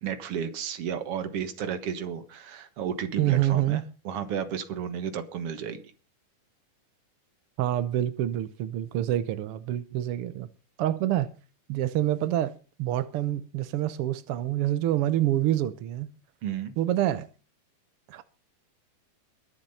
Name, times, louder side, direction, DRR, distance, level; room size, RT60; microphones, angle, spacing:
voice 1, 0.0-5.8 16.4-16.7, right 8 dB, 55° right, 2.1 m, -33 dB
voice 2, 3.2-3.9 7.6-10.5 10.8-11.3 11.7-12.5 12.8-16.1 16.8-17.3 18.1-18.2, right 13 dB, 80° right, 1.3 m, -27 dB
22.0 x 7.3 x 5.5 m
omnidirectional pair, 3.7 m